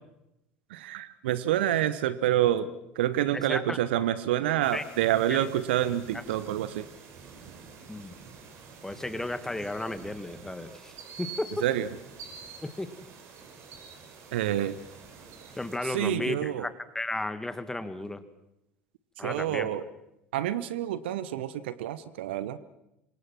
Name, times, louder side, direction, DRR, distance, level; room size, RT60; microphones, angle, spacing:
voice 1, 0.7-6.9 11.6-11.9 14.3-14.8 15.8-16.7 19.2-19.8 20.3-22.6, right 12 dB, 60° right, 16 dB, 1.1 m, -28 dB
voice 2, 3.3-3.8 4.7-4.8 5.3-5.4 7.9-8.1 8.8-11.5 12.6-12.9 15.6-18.2 19.2-19.7, left 1 dB, 5° left, 11 dB, 2.0 m, -34 dB
sound 1, 4.6-15.8, right 5 dB, 45° right, 5.7 m, -48 dB
27.5 x 25.5 x 6.1 m, 0.88 s
figure-of-eight pair, 70°, 6 cm